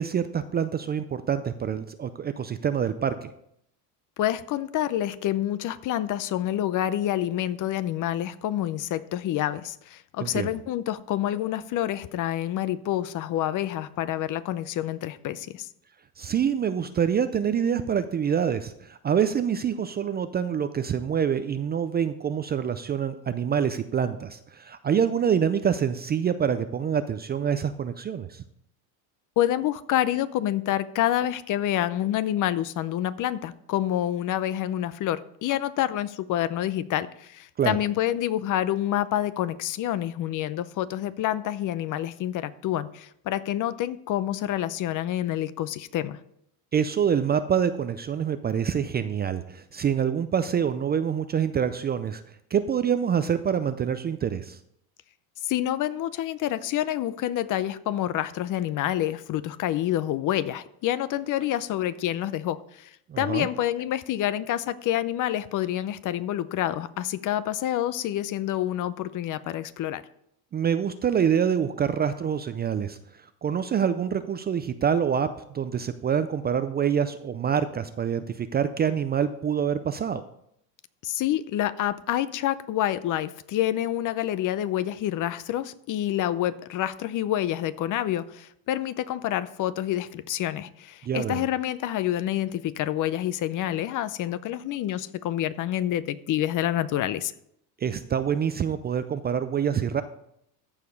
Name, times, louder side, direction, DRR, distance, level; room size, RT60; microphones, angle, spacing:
voice 1, 0.0-3.3 10.2-10.5 16.2-28.4 37.6-37.8 46.7-52.2 52.5-54.6 63.1-63.5 70.5-80.2 91.0-91.5 97.8-100.0, right 8 dB, 25° right, 11 dB, 0.4 m, -26 dB
voice 2, 4.2-15.7 29.4-46.2 55.4-62.9 63.2-70.0 81.0-97.3, left 12 dB, 45° left, 16 dB, 0.6 m, -28 dB
14.0 x 4.9 x 5.3 m, 0.74 s
supercardioid pair, 115°, 44 cm